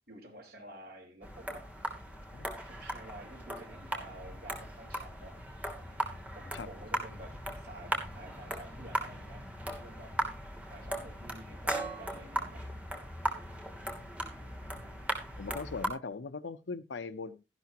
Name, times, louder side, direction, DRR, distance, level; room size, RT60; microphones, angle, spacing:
voice 1, 0.1-1.7 2.6-5.7 6.3-10.1 10.7-12.6 15.8-15.9, right 1 dB, 60° right, 0 dB, 4.3 m, -51 dB
sound 1, 1.2-15.9, right 1 dB, 10° right, 2.8 m, -38 dB
voice 2, 14.0-14.9 15.4-17.4, left 4 dB, 85° left, 12 dB, 0.6 m, -41 dB
13.5 x 11.5 x 2.9 m, 0.26 s
head